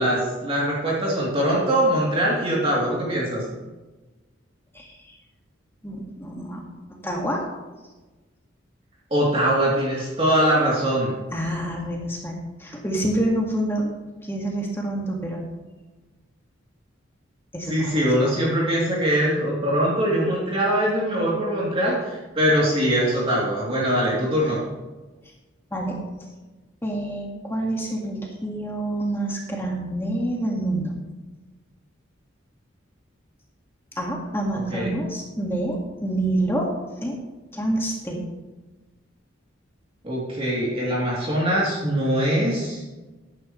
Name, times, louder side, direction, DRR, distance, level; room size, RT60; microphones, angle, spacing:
voice 1, 0.0-3.4 9.1-11.1 17.7-24.6 34.7-34.9 40.0-42.8, equal, 30° right, -6 dB, 3.3 m, -22 dB
voice 2, 4.7-5.2 5.8-6.7 7.0-7.4 11.3-13.9 14.2-15.5 17.5-18.4 25.7-26.0 26.8-30.9 34.0-36.7 37.0-37.2 37.5-38.2, right 1 dB, 10° left, -1 dB, 2.0 m, -27 dB
15.5 x 11.0 x 3.3 m, 1.2 s
head